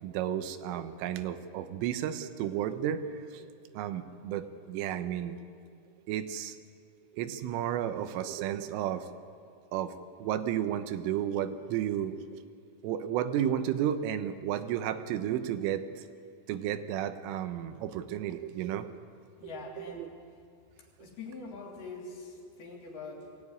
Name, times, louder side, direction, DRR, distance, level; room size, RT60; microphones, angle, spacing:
voice 1, 0.0-3.5 3.7-5.4 6.1-6.6 7.2-9.1 9.7-9.9 10.2-12.4 12.8-16.0 16.5-18.9 20.0-20.1, right 10 dB, 85° right, 10 dB, 3.6 m, -32 dB
voice 2, 19.4-20.1 21.0-23.4, left 3 dB, 55° left, -1 dB, 4.3 m, -44 dB
22.5 x 16.0 x 9.8 m, 2.3 s
omnidirectional pair, 5.6 m